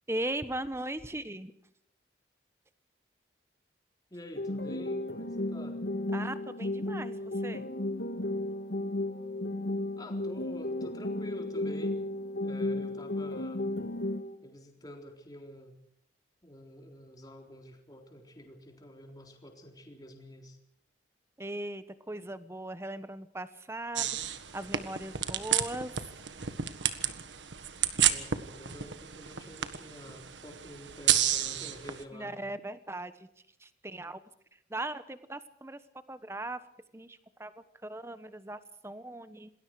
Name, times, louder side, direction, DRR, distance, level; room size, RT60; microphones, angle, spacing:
voice 1, 0.1-1.5 6.1-7.6 21.4-26.0 32.1-33.3 33.6-34.2 34.7-35.8 36.1-36.6 36.9-39.5, right 1 dB, 15° right, 12 dB, 1.1 m, -39 dB
voice 2, 4.1-5.9 10.0-12.0 12.4-13.6 14.4-15.7 16.4-20.6 28.1-32.5, equal, 20° left, 2 dB, 3.9 m, -48 dB
sound 1, 4.4-14.4, left 1 dB, 70° left, 1.7 m, -34 dB
sound 2, 24.0-32.0, right 10 dB, 80° right, 1.5 m, -31 dB
27.5 x 20.0 x 4.8 m, 0.70 s
head